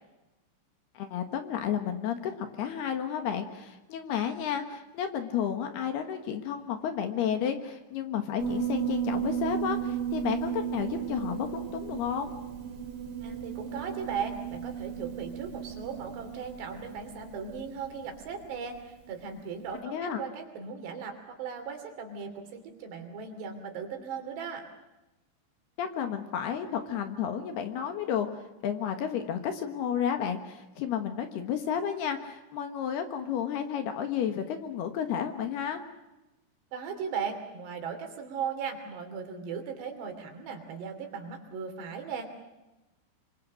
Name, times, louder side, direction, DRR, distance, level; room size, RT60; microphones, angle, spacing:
voice 1, 0.9-12.3 19.8-20.2 25.8-35.8, left 8 dB, 65° left, 7 dB, 3.1 m, -32 dB
Piano, 8.4-19.1, right 8 dB, 45° right, 2.7 m, -35 dB
voice 2, 13.2-24.7 36.7-42.3, right 6 dB, 65° right, 5 dB, 5.0 m, -37 dB
26.5 x 25.0 x 6.4 m, 1.0 s
omnidirectional pair, 5.5 m